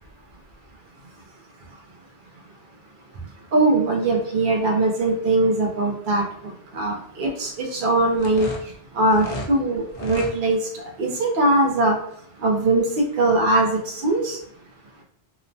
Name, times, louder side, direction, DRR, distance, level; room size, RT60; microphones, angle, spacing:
voice 1, 3.5-8.5 8.9-12.0 12.4-14.4, right 2 dB, 60° right, 1 dB, 0.7 m, -21 dB
sound 1, 8.1-9.5 9.9-10.3, equal, 45° left, 0.5 m, -33 dB
2.9 x 2.1 x 2.6 m, 0.67 s
omnidirectional pair, 1.0 m